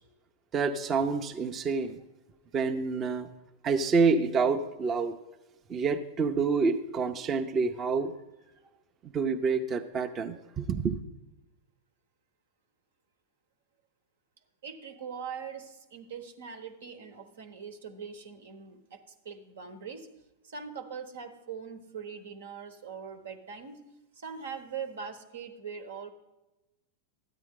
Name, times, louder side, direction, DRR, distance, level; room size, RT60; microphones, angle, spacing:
voice 1, 0.5-2.0 2.5-3.3 3.6-5.2 5.7-8.1 9.0-11.0, right 4 dB, 30° right, 5 dB, 0.6 m, -28 dB
voice 2, 14.6-20.1 20.4-23.8 24.1-26.1, right 6 dB, 80° right, 7 dB, 1.1 m, -42 dB
12.5 x 9.1 x 3.7 m, 1.0 s
hypercardioid pair, 110°, 0 cm